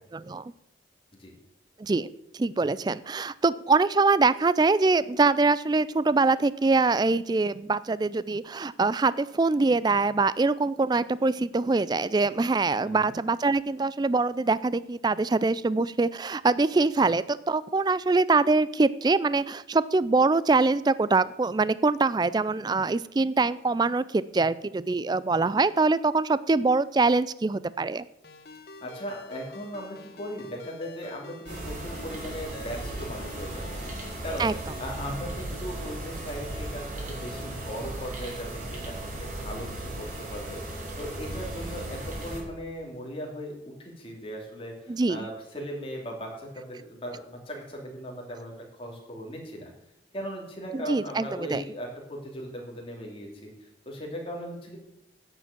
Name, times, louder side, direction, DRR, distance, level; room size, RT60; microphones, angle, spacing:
voice 1, 0.1-0.4 1.8-2.1 2.3-28.0 34.4-34.5 44.9-45.3 50.7-51.6, right 3 dB, 20° right, 18 dB, 0.3 m, -24 dB
Ringtone, 28.2-35.1, left 3 dB, 55° left, 0.9 m, -46 dB
voice 2, 28.8-34.5 34.8-49.7 50.1-54.8, equal, 30° left, 0 dB, 2.9 m, -38 dB
sound 1, 31.5-42.4, right 1 dB, 45° right, 3.2 m, -36 dB
10.5 x 6.9 x 7.3 m, 0.84 s
head